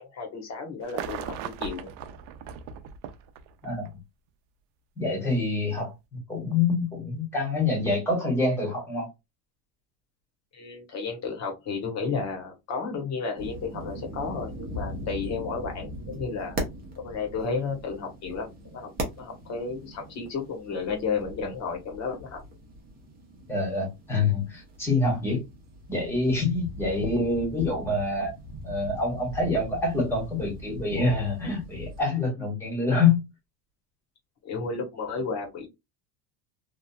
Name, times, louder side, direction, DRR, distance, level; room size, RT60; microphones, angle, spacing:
voice 1, 0.0-1.3 1.6-1.9 10.5-16.6 17.0-18.9 19.2-22.4 34.4-35.7, left 4 dB, 35° left, 1.0 m, -32 dB
sound 1, 0.8-3.9 5.0-5.1, right 9 dB, 80° right, 0.6 m, -38 dB
voice 2, 5.0-9.1 23.5-25.4 25.9-28.3 28.6-33.3, left 3 dB, 5° left, 1.2 m, -26 dB
sound 2, 13.4-32.0, equal, 20° right, 0.7 m, -40 dB
2.9 x 2.3 x 2.2 m
cardioid pair, 155°, 44 cm